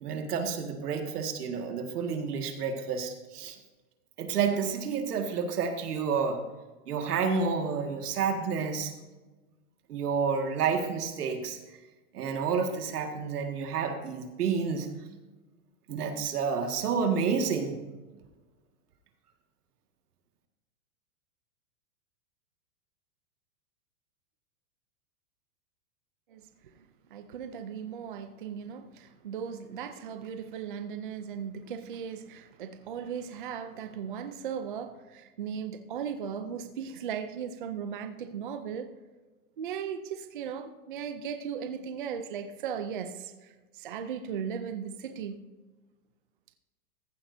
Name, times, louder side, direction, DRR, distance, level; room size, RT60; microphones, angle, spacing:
voice 1, 0.0-3.6 4.2-6.4 6.9-8.9 9.9-11.6 12.1-14.9 15.9-17.8, right 6 dB, 85° right, 5 dB, 1.9 m, -30 dB
voice 2, 27.1-38.9 39.6-45.4, right 7 dB, 35° right, 9 dB, 0.4 m, -37 dB
15.0 x 11.0 x 2.7 m, 1.2 s
supercardioid pair, 180°, 45 cm